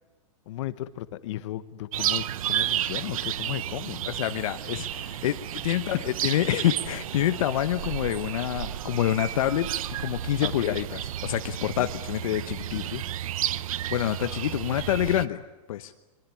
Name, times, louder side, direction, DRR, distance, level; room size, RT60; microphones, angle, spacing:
voice 1, 0.5-4.0 5.9-6.0 10.4-10.8 11.8-11.9 12.7-13.0, left 14 dB, 55° left, 13 dB, 1.4 m, -34 dB
sound 1, 1.9-15.3, right 12 dB, 75° right, 0.9 m, -32 dB
voice 2, 4.1-12.8 13.9-15.4 15.7-15.9, left 12 dB, 75° left, 8 dB, 1.1 m, -27 dB
23.0 x 23.0 x 8.4 m, 1.1 s
supercardioid pair, 155°, 18 cm